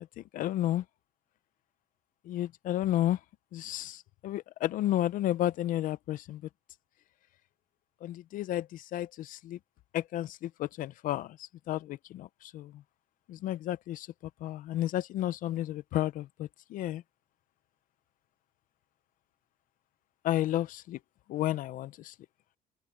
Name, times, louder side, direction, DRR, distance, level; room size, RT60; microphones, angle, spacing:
voice 1, 0.3-0.8 2.3-3.2 3.5-6.4 8.0-9.6 9.9-12.7 13.3-14.1 14.4-17.0 20.2-21.0 21.3-22.1, left 13 dB, 60° left, 0.5 m, -32 dB
open air
cardioid pair, 175°, 16 cm